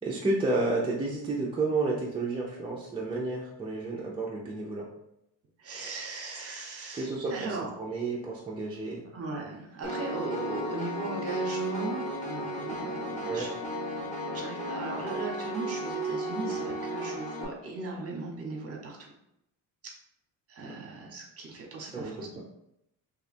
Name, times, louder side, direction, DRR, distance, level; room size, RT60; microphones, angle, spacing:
voice 1, 0.0-4.9 6.9-9.0 13.2-13.5 20.7-20.8 21.9-22.4, right 2 dB, 15° right, -4 dB, 0.3 m, -31 dB
voice 2, 5.6-7.7 8.8-13.5 14.3-19.1 20.5-22.4, right 3 dB, 30° right, 0 dB, 0.9 m, -38 dB
Piano, 9.8-17.4, right 1 dB, 15° left, 0.7 m, -34 dB
2.8 x 2.2 x 4.2 m, 0.80 s
cardioid pair, 135°, 44 cm